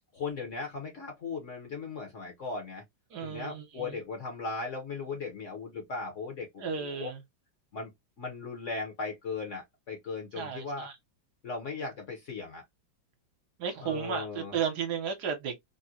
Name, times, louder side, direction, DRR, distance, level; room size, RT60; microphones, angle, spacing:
voice 1, 0.1-2.8 3.2-7.1 7.7-7.9 8.2-10.9 11.4-12.6 13.8-14.6, left 4 dB, 55° left, 0.9 m, -37 dB
voice 2, 3.1-4.0 6.6-7.2 10.4-10.9 13.6-15.6, right 7 dB, 70° right, 1.3 m, -34 dB
3.6 x 2.1 x 2.7 m
omnidirectional pair, 2.0 m